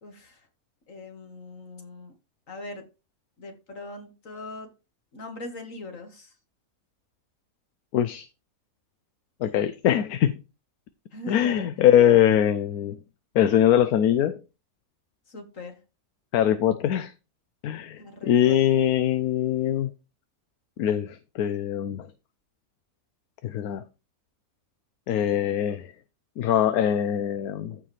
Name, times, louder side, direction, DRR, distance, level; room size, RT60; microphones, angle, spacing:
voice 1, 0.0-0.5 0.9-2.1 2.5-2.8 3.4-4.7 5.1-6.3 11.1-11.7 15.3-15.8 18.0-18.6, left 2 dB, 60° left, 2.3 m, -40 dB
voice 2, 7.9-8.3 9.4-10.3 11.3-13.0 13.3-14.4 16.3-17.1 17.6-19.9 20.8-22.1 23.4-23.8 25.1-25.9 26.4-27.8, left 10 dB, 85° left, 1.2 m, -22 dB
14.5 x 4.9 x 3.3 m
omnidirectional pair, 1.5 m